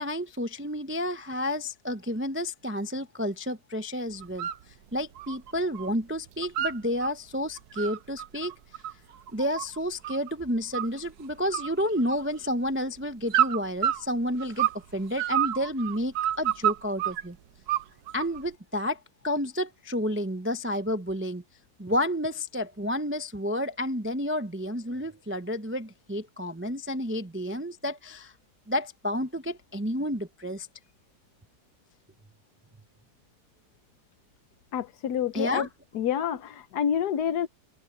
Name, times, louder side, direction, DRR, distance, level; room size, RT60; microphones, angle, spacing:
voice 1, 0.0-4.5 4.9-8.5 9.3-17.4 18.1-21.4 21.8-28.3 28.7-30.7 35.3-35.7, equal, 15° right, 0.4 m, -30 dB
sound 1, 4.2-4.6 5.0-5.9 6.2-7.1 7.6-10.3 10.7-11.2 11.5-12.5 13.3-14.8 15.2-17.2 17.7-18.4, right 11 dB, 75° right, 1.3 m, -29 dB
voice 2, 34.7-35.7 35.9-37.5, left 9 dB, 75° left, 1.4 m, -28 dB
omnidirectional pair, 1.7 m